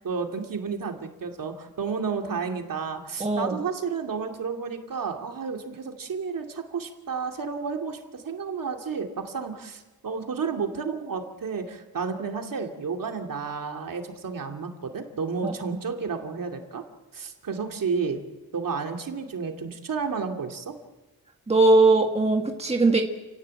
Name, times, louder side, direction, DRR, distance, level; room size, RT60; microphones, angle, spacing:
voice 1, 0.0-16.8 17.1-18.2 18.5-20.7, right 5 dB, 60° right, 3 dB, 2.6 m, -31 dB
voice 2, 3.2-3.6 15.4-15.5 21.5-23.0, right 3 dB, 15° right, 2 dB, 1.6 m, -20 dB
29.5 x 18.0 x 7.7 m, 1.2 s
wide cardioid pair, 170°, 37 cm